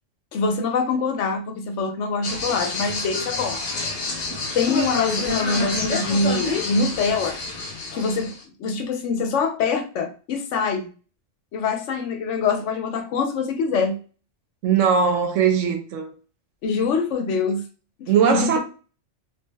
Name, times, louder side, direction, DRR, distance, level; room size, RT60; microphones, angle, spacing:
voice 1, 0.3-3.6 4.5-7.4 7.9-8.3 8.6-10.9 11.5-13.9 16.6-17.6 18.0-18.6, left 4 dB, 75° left, 0.9 m, -24 dB
sound 1, 2.2-8.4, left 3 dB, 45° left, 0.6 m, -28 dB
voice 2, 14.6-16.1 18.1-18.6, right 7 dB, 80° right, 1.0 m, -19 dB
3.1 x 2.1 x 3.3 m
omnidirectional pair, 1.3 m